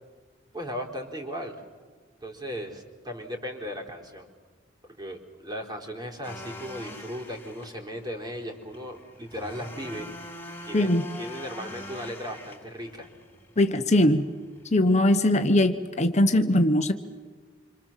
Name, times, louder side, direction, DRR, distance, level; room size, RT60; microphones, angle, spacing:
voice 1, 0.5-1.5 2.2-4.3 4.9-10.1 10.7-13.1, equal, 20° right, 2 dB, 4.2 m, -37 dB
sound 1, 6.2-15.0, left 1 dB, 10° left, 3.8 m, -44 dB
voice 2, 10.7-11.0 13.6-14.3 14.7-16.9, left 1 dB, 35° left, 7 dB, 1.2 m, -21 dB
27.0 x 26.0 x 7.5 m, 1.5 s
head